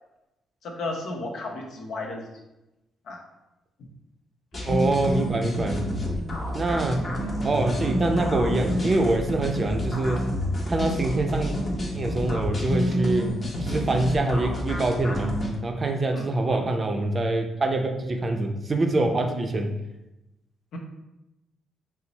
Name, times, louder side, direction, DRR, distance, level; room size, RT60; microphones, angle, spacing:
voice 1, 0.6-2.3 3.1-3.2 3.8-3.9 6.9-7.1 7.8-7.9 16.1-16.6 20.7-20.8, left 2 dB, 70° left, 1 dB, 0.8 m, -34 dB
sound 1, 4.5-15.6, equal, 35° left, 0.9 m, -29 dB
voice 2, 4.6-5.8 6.5-7.1 7.4-10.2 10.7-11.5 11.9-13.3 13.6-15.3 15.6-19.7, right 2 dB, 30° right, 4 dB, 0.5 m, -25 dB
sound 2, 8.0-10.8, equal, 85° right, 0.8 m, -36 dB
4.4 x 2.0 x 3.9 m, 0.95 s
cardioid pair, 90°, 0 cm